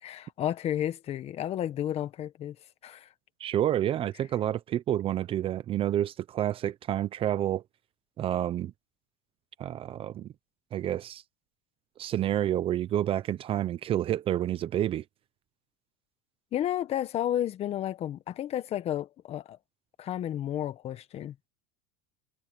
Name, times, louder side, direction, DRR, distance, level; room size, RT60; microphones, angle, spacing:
voice 1, 0.0-2.5 2.8-3.1 16.5-19.6 20.0-21.3, left 11 dB, 35° left, 1.5 m, -32 dB
voice 2, 3.4-7.6 8.2-8.7 9.6-10.3 10.7-11.2 12.0-15.0, right 11 dB, 30° right, 0.8 m, -29 dB
supercardioid pair, 140°, 18 cm